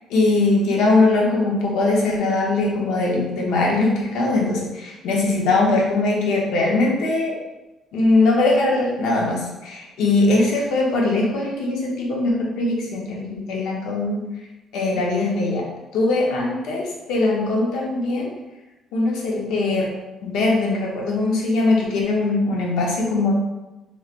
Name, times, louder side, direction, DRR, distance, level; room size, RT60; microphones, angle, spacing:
voice 1, 0.1-7.4 7.9-14.3 14.7-15.6 15.9-18.3 18.9-19.9 20.2-23.3, left 2 dB, 85° left, -2 dB, 0.8 m, -21 dB
3.1 x 3.1 x 2.4 m, 1.0 s
cardioid pair, 175°, 0 cm